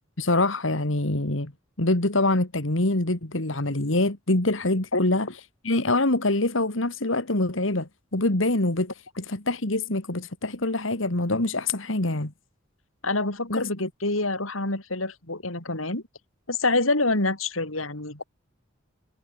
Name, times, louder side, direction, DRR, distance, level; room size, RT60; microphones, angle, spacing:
voice 1, 0.2-1.5 1.8-5.3 5.6-12.3 13.5-13.7, left 2 dB, 70° left, 2.5 m, -25 dB
voice 2, 13.0-16.0 16.5-18.2, left 2 dB, 85° left, 6.1 m, -26 dB
head